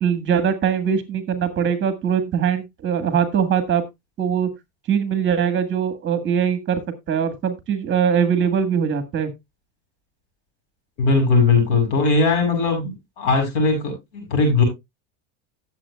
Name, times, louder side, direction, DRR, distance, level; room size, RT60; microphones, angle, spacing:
voice 1, 0.0-3.8 4.2-4.5 4.9-6.8 7.1-9.3, right 7 dB, 30° right, 1.6 m, -21 dB
voice 2, 11.0-14.6, left 3 dB, 80° left, 6.4 m, -19 dB
17.0 x 7.4 x 2.3 m
supercardioid pair, 120°, 36 cm